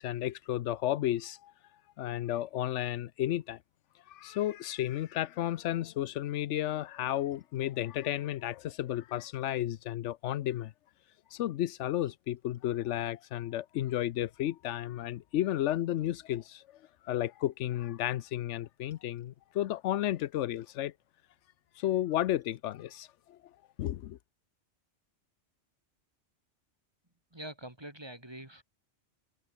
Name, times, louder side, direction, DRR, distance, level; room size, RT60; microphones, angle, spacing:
voice 1, 0.0-1.5 2.0-3.6 4.1-10.7 11.3-20.9 21.8-23.5 23.8-24.2, left 13 dB, 80° left, 0.9 m, -33 dB
Splash splatter, 6.8-23.9, right 1 dB, 40° right, 7.7 m, -77 dB
voice 2, 27.3-28.6, right 1 dB, 20° right, 2.5 m, -44 dB
omnidirectional pair, 1.2 m